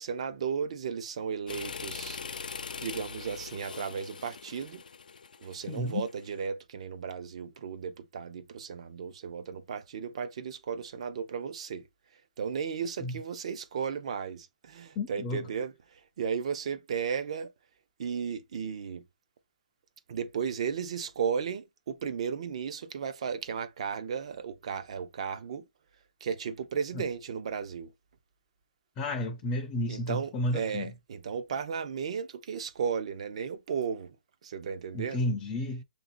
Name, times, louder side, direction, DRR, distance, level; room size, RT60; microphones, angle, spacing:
voice 1, 0.0-2.2 2.8-4.8 5.4-11.9 12.4-17.5 18.0-19.0 20.1-25.6 26.2-27.9 29.9-34.2 34.4-35.2, right 6 dB, 45° right, 0.6 m, -35 dB
sound 1, 1.5-6.4, left 6 dB, 90° left, 0.4 m, -42 dB
voice 2, 5.7-6.0 13.0-13.2 15.0-15.4 26.9-27.0 29.0-30.9 34.9-35.8, left 1 dB, 15° left, 0.5 m, -32 dB
6.9 x 2.7 x 2.5 m
hypercardioid pair, 165°, 4 cm